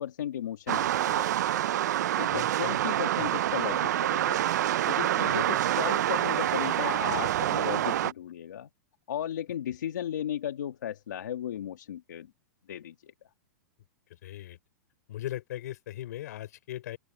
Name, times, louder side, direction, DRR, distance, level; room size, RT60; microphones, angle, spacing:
voice 1, 0.0-1.4 2.2-4.5 4.9-8.7 9.1-12.3 12.7-13.0, left 10 dB, 85° left, 1.9 m, -35 dB
sound 1, 0.7-8.1, right 12 dB, 75° right, 0.6 m, -27 dB
voice 2, 2.3-2.8 3.2-3.3 5.2-5.5 14.1-14.6 15.1-17.0, left 13 dB, 70° left, 4.1 m, -39 dB
open air
hypercardioid pair, 140°, 9 cm